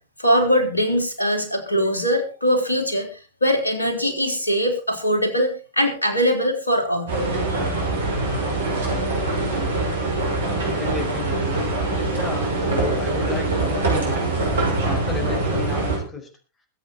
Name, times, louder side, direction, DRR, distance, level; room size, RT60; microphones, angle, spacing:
voice 1, 0.2-3.1 3.4-7.2 7.5-7.6, equal, 80° left, 3 dB, 3.7 m, -21 dB
sound 1, 7.1-16.0, right 2 dB, 65° right, 6.0 m, -23 dB
voice 2, 10.4-11.7 12.1-16.3, left 4 dB, 20° left, 5 dB, 4.9 m, -33 dB
22.5 x 8.5 x 4.5 m, 0.34 s
figure-of-eight pair, 90°, 0 cm